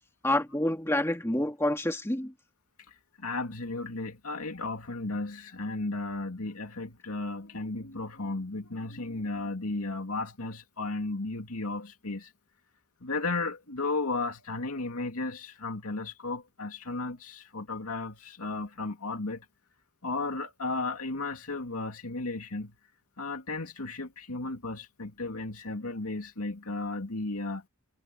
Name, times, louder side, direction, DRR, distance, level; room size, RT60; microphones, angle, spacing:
voice 1, 0.2-2.3, left 1 dB, 10° left, 2.2 m, -28 dB
voice 2, 2.9-12.3 13.0-19.5 20.0-22.8 23.2-27.6, left 3 dB, 85° left, 2.5 m, -34 dB
head